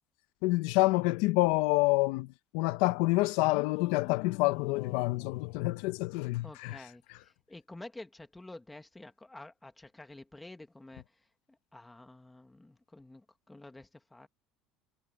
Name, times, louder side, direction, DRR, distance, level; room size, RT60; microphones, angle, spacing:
voice 1, 0.4-7.2, left 22 dB, 75° left, 0.7 m, -28 dB
sound 1, 3.4-6.5, left 20 dB, 60° left, 0.3 m, -44 dB
voice 2, 6.4-11.0 11.5-14.3, left 2 dB, 5° left, 1.2 m, -50 dB
cardioid pair, 170°, 0 cm